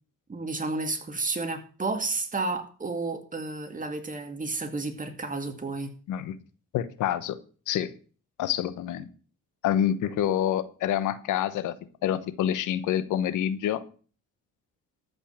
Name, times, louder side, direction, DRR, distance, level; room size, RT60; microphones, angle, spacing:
voice 1, 0.3-5.9, right 3 dB, 25° right, 7 dB, 2.3 m, -31 dB
voice 2, 6.7-7.4 7.7-7.9 8.4-9.1 9.6-11.7 12.0-13.8, left 10 dB, 85° left, 13 dB, 1.1 m, -27 dB
13.5 x 5.5 x 7.3 m, 0.39 s
cardioid pair, 90°, 30 cm